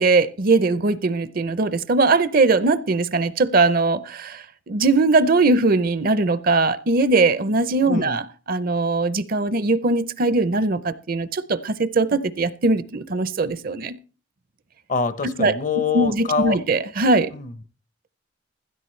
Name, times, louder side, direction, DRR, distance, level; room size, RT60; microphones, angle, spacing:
voice 1, 0.0-14.0 15.4-15.5 15.9-17.3, right 3 dB, 50° right, 0.6 m, -20 dB
voice 2, 14.9-16.6 17.3-17.5, left 5 dB, 45° left, 0.7 m, -25 dB
16.0 x 12.5 x 3.2 m
head